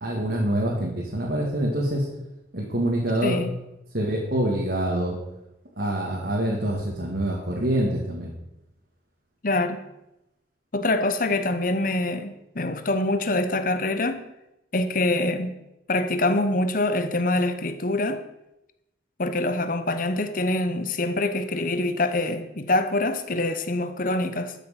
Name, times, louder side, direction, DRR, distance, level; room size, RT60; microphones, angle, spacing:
voice 1, 0.0-2.1 2.5-3.4 3.9-5.2 5.8-8.3, right 1 dB, 55° right, 2.1 m, -25 dB
voice 2, 9.4-9.8 10.7-14.3 14.7-15.5 15.9-18.2 19.2-24.5, left 2 dB, 45° left, 1.0 m, -25 dB
12.5 x 7.8 x 5.9 m
head